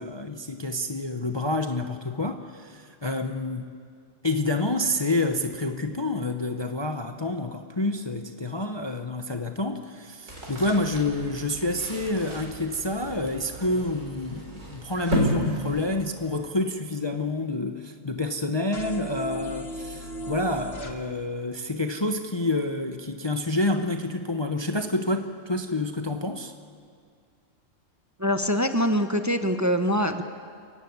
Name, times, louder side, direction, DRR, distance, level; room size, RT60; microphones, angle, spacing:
voice 1, 0.0-3.7 4.2-26.5, left 2 dB, 25° left, 6 dB, 0.8 m, -28 dB
sound 1, 10.3-16.5, right 1 dB, 65° right, 4.6 m, -33 dB
sound 2, 18.7-20.9, equal, 50° left, 2.0 m, -36 dB
voice 2, 28.2-30.2, equal, 15° right, 6 dB, 1.0 m, -24 dB
27.5 x 15.5 x 9.6 m, 2.2 s
omnidirectional pair, 1.4 m